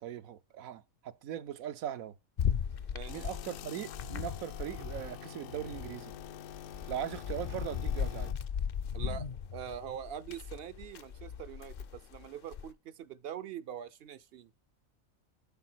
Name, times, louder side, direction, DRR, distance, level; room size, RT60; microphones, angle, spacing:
voice 1, 0.0-2.2 3.1-6.1 6.9-8.3, right 10 dB, 85° right, 1.1 m, -40 dB
sound 1, 2.4-5.2 5.5-12.7, left 7 dB, 55° left, 0.6 m, -37 dB
voice 2, 2.9-3.3 8.9-9.3 9.5-14.5, right 9 dB, 60° right, 0.6 m, -43 dB
sound 2, 3.1-8.3, left 10 dB, 75° left, 1.0 m, -47 dB
11.0 x 3.9 x 4.5 m
omnidirectional pair, 1.4 m